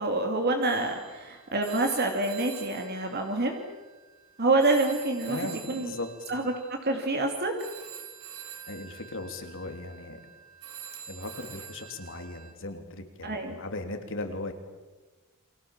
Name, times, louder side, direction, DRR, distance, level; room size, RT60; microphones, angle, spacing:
voice 1, 0.0-3.6 4.4-6.0 6.3-6.5 6.8-7.5 13.2-13.6, right 2 dB, 45° right, 3 dB, 2.6 m, -27 dB
Telephone, 0.6-4.3 4.6-12.5, right 8 dB, 85° right, 4.1 m, -46 dB
voice 2, 5.2-6.1 8.7-10.2 11.1-14.5, left 2 dB, 60° left, 6 dB, 3.3 m, -37 dB
29.5 x 24.5 x 7.4 m, 1.2 s
head